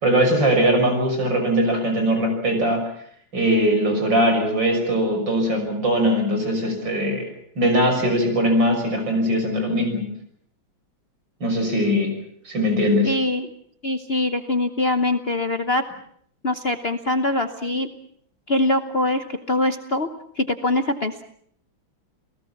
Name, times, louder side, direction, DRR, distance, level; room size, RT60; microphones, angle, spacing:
voice 1, 0.0-2.9 3.3-7.3 7.6-10.1 11.4-12.1 12.5-13.2, equal, 60° right, 4 dB, 6.9 m, -20 dB
voice 2, 13.0-13.5 13.8-15.8 16.4-17.9 18.5-20.1 20.3-21.2, left 2 dB, 40° left, 8 dB, 1.0 m, -23 dB
29.0 x 18.0 x 7.2 m, 0.65 s
omnidirectional pair, 2.2 m